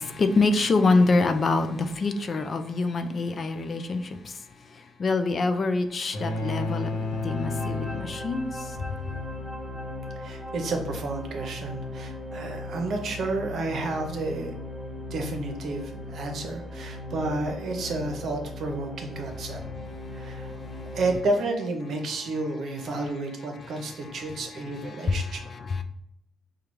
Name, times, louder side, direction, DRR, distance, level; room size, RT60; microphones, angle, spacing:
voice 1, 0.0-4.4 4.7-6.9 7.2-8.8 20.7-21.0 23.8-25.8, left 3 dB, 45° left, 0.4 m, -26 dB
sound 1, 6.1-8.7, left 3 dB, 85° left, 1.1 m, -31 dB
sound 2, 6.8-21.2, left 2 dB, 10° left, 0.7 m, -38 dB
voice 2, 10.2-14.5 15.1-19.6 20.1-20.5 20.9-25.4, right 2 dB, 65° right, 0.8 m, -31 dB
4.9 x 2.3 x 3.0 m
cardioid pair, 90°, 0 cm